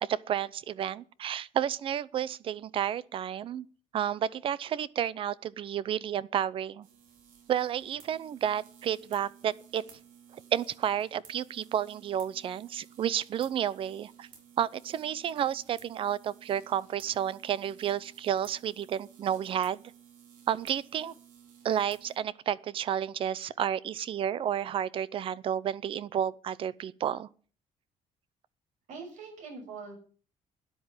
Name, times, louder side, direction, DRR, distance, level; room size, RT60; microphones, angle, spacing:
voice 1, 0.0-3.7 3.9-6.9 7.5-9.8 10.5-14.3 14.6-19.8 20.5-21.1 21.6-27.3, right 10 dB, 40° right, 0.6 m, -31 dB
sound 1, 6.8-22.2, right 8 dB, 80° right, 4.8 m, -56 dB
voice 2, 28.9-30.0, right 4 dB, 65° right, 6.8 m, -43 dB
12.5 x 10.5 x 7.3 m
cardioid pair, 175°, 13 cm